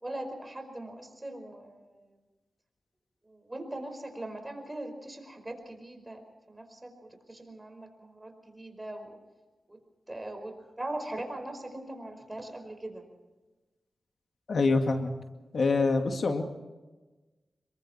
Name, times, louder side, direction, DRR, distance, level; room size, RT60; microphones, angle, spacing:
voice 1, 0.0-2.1 3.3-6.2 6.5-9.2 9.7-9.8 10.1-13.1, right 1 dB, 20° right, 6 dB, 5.0 m, -40 dB
voice 2, 14.5-15.1 15.5-16.4, left 3 dB, 70° left, 5 dB, 2.1 m, -25 dB
27.0 x 23.0 x 4.4 m, 1.2 s
cardioid pair, 65°, 0 cm